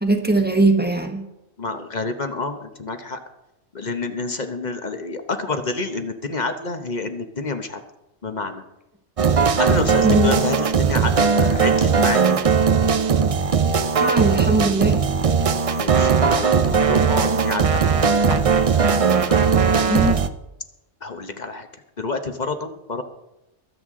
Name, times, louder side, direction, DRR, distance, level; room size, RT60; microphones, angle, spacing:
voice 1, 0.0-1.2 10.0-10.4 14.0-15.0 19.9-20.2, right 2 dB, 10° right, 4 dB, 1.2 m, -20 dB
voice 2, 1.6-3.2 3.7-7.8 8.2-8.6 9.6-12.4 15.8-18.0 18.3-18.8 19.3-19.9 21.0-21.7 22.0-23.0, left 3 dB, 40° left, 7 dB, 1.0 m, -28 dB
sound 1, 9.2-20.3, right 6 dB, 45° right, 0.4 m, -18 dB
23.0 x 7.9 x 3.7 m, 0.93 s
omnidirectional pair, 1.3 m